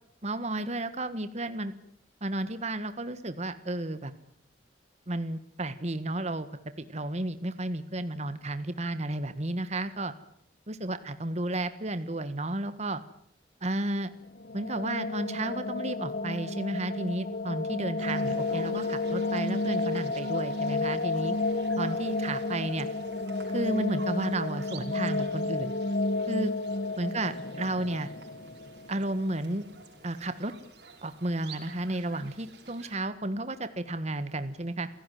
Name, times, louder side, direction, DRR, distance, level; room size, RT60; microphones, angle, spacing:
voice 1, 0.2-1.7 2.2-4.1 5.1-6.5 6.9-10.1 10.7-13.0 13.6-14.1 14.5-21.4 21.8-22.9 23.5-25.7 26.3-26.5 27.0-28.1 28.9-29.7 30.0-30.5 31.0-34.9, right 1 dB, 40° right, 11 dB, 1.6 m, -32 dB
sound 1, 14.3-29.2, left 3 dB, 60° left, 1.4 m, -31 dB
sound 2, 18.0-33.0, right 2 dB, 75° right, 5.6 m, -49 dB
28.5 x 17.0 x 9.4 m, 0.68 s
head